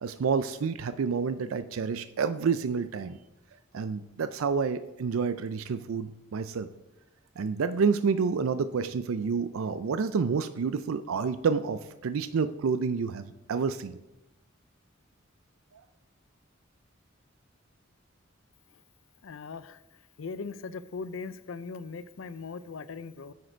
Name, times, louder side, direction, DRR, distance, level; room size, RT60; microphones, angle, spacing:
voice 1, 0.0-3.2 3.7-6.7 7.4-14.0, right 5 dB, 90° right, 12 dB, 0.4 m, -29 dB
voice 2, 19.2-19.8 20.2-23.3, left 4 dB, 75° left, 15 dB, 0.5 m, -39 dB
9.4 x 6.5 x 4.4 m, 0.95 s
head